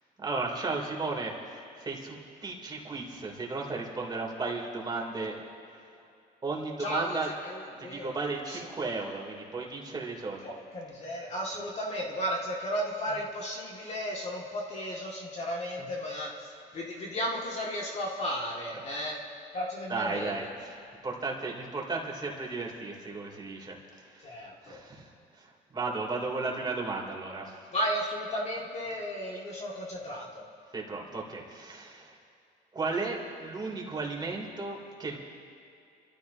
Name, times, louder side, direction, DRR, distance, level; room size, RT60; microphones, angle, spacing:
voice 1, 0.2-5.4 6.4-7.3 7.8-10.4 15.8-15.9 19.9-27.5 30.7-32.2 32.7-35.2, right 3 dB, 25° right, -1 dB, 3.0 m, -35 dB
voice 2, 6.8-8.2 8.5-8.6 10.4-19.2 19.5-20.5 24.2-24.8 27.7-30.5, equal, 40° left, -3 dB, 2.1 m, -34 dB
29.5 x 13.5 x 2.8 m, 2.5 s
cardioid pair, 110°, 17 cm